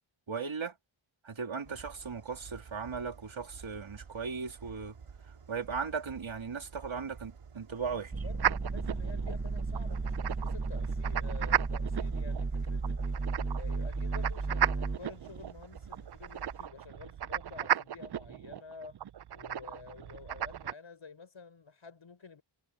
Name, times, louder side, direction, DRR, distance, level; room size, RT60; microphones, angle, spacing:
voice 1, 0.3-0.8 1.2-5.0 5.3-8.1, right 5 dB, 70° right, 3.2 m, -37 dB
sound 1, 1.6-16.7, right 6 dB, 90° right, 2.1 m, -51 dB
voice 2, 7.9-19.0 19.3-22.4, left 5 dB, 65° left, 5.8 m, -50 dB
sound 2, 8.1-15.0, right 3 dB, 25° right, 1.0 m, -34 dB
sound 3, 8.4-20.7, right 10 dB, 55° right, 0.5 m, -36 dB
wide cardioid pair, 110°, 50 cm